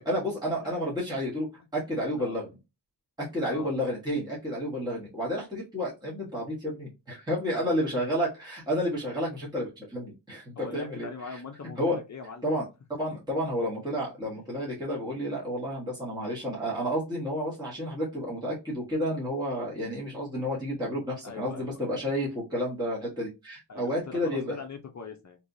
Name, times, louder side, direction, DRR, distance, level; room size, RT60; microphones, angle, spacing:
voice 1, 0.0-1.5 1.7-2.5 3.2-11.4 11.7-12.0 12.4-12.6 13.0-24.7, equal, 10° right, -6 dB, 1.2 m, -31 dB
voice 2, 7.6-8.1 10.6-12.5 13.3-13.4 21.2-22.0 23.7-25.4, left 4 dB, 40° left, 5 dB, 0.6 m, -42 dB
3.2 x 2.9 x 2.6 m, 0.25 s
wide cardioid pair, 130°, 44 cm